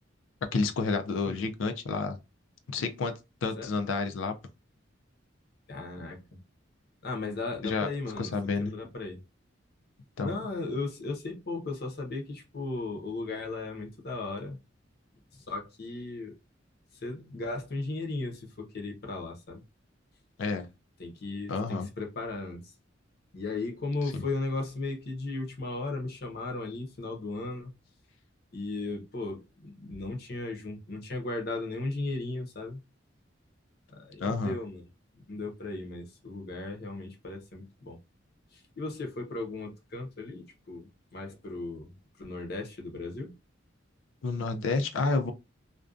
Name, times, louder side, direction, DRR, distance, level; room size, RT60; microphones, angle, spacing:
voice 1, 0.5-2.2 2.7-3.1 3.4-4.3 7.6-7.9 8.2-8.7 10.2-10.3 20.4-20.7 21.5-21.9 24.1-24.2 34.2-34.6 44.2-45.3, left 4 dB, 85° left, 0.4 m, -29 dB
voice 2, 5.7-6.3 7.0-9.2 10.2-14.6 15.3-16.3 16.9-19.6 21.0-22.7 23.3-27.7 28.5-32.8 33.9-34.8 35.1-38.0 38.5-41.9 42.2-43.3, left 2 dB, 55° left, 0.7 m, -36 dB
2.5 x 2.2 x 2.3 m
head